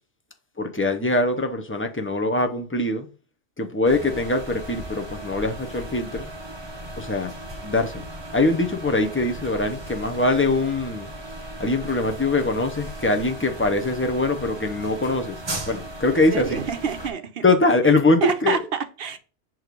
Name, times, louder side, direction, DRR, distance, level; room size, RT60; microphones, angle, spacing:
voice 1, 0.6-3.1 3.6-6.3 7.0-7.3 7.6-8.1 8.3-11.1 11.6-15.4 15.7-16.6 17.4-18.6, left 2 dB, 15° left, 0.5 m, -22 dB
sound 1, 3.8-17.1, right 1 dB, 25° right, 1.0 m, -37 dB
voice 2, 16.1-17.4 18.2-19.2, right 7 dB, 60° right, 0.9 m, -28 dB
6.4 x 3.1 x 5.2 m
omnidirectional pair, 1.2 m